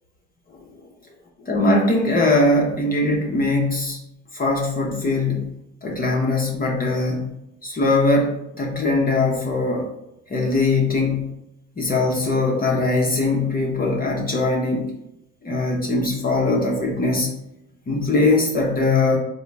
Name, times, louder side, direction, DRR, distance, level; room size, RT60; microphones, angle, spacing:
voice 1, 1.4-4.0 4.3-5.5 5.8-7.3 7.6-9.9 10.3-11.3 11.8-14.8 15.4-17.3 17.9-19.2, left 2 dB, 30° left, -2 dB, 0.8 m, -21 dB
3.8 x 2.2 x 3.3 m, 0.86 s
supercardioid pair, 80°, 32 cm